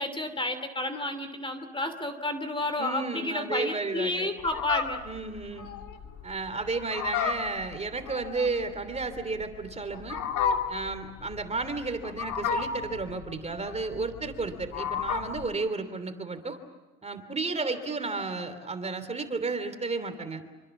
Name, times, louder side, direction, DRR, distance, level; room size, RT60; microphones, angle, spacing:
voice 1, 0.0-5.0, left 2 dB, 15° left, 10 dB, 2.7 m, -31 dB
voice 2, 2.8-4.3 5.0-5.7 6.2-10.2 10.7-16.6 17.0-20.4, right 3 dB, 20° right, 9 dB, 3.1 m, -33 dB
Fowl, 4.4-15.5, left 6 dB, 70° left, 2.8 m, -32 dB
27.0 x 26.0 x 7.2 m, 1.2 s
cardioid pair, 115°, 31 cm